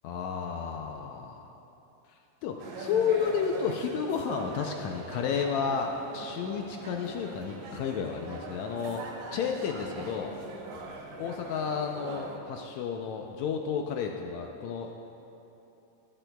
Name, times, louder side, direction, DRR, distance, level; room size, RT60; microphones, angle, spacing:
voice 1, 0.0-1.5 2.4-9.0 9.3-10.3 11.2-14.9, left 6 dB, 80° left, 3 dB, 1.6 m, -31 dB
sound 1, 2.6-12.4, right 2 dB, 90° right, 2.8 m, -42 dB
18.0 x 12.5 x 2.3 m, 2.9 s
omnidirectional pair, 3.8 m